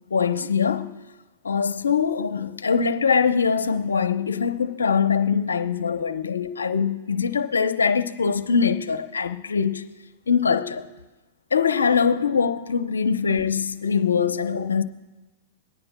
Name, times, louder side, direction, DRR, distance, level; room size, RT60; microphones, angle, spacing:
voice 1, 0.1-0.9 1.4-9.8 10.3-10.9 11.5-14.8, left 6 dB, 85° left, 0.7 m, -23 dB
22.5 x 9.6 x 2.2 m
hypercardioid pair, 110°, 0 cm